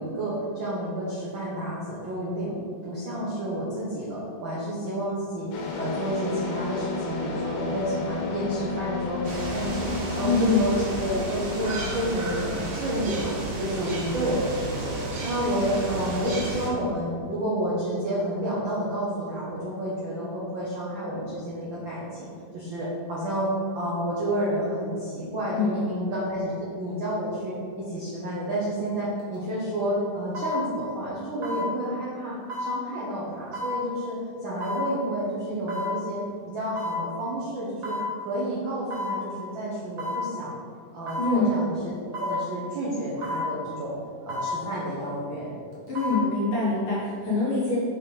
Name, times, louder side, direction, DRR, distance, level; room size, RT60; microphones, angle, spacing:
voice 1, 0.0-2.6 2.8-5.5 5.8-15.0 15.2-22.3 22.5-36.2 36.5-40.5 40.9-41.7 42.0-44.0 44.2-45.5, right 1 dB, 90° right, -7 dB, 1.0 m, -30 dB
sound 1, 5.5-12.2, left 4 dB, 85° left, 2.6 m, -33 dB
sound 2, 9.2-16.7, right 2 dB, 70° right, 2.9 m, -33 dB
voice 2, 10.2-10.7 25.5-26.0 41.2-41.5 45.9-47.8, left 3 dB, 55° left, -7 dB, 1.7 m, -25 dB
sound 3, 29.2-29.3 30.3-30.6 31.4-31.7 32.5-32.7 33.5-33.8 34.6-34.8 35.7-35.9 36.8-37.0 37.8-38.1 38.9-39.2 40.0-40.2 41.1-41.3 42.1-42.4 43.2-43.5 44.3-44.5 45.7-46.2 46.6-46.7, left 1 dB, 50° right, 1.0 m, -31 dB
5.8 x 4.7 x 5.0 m, 2.3 s
omnidirectional pair, 3.8 m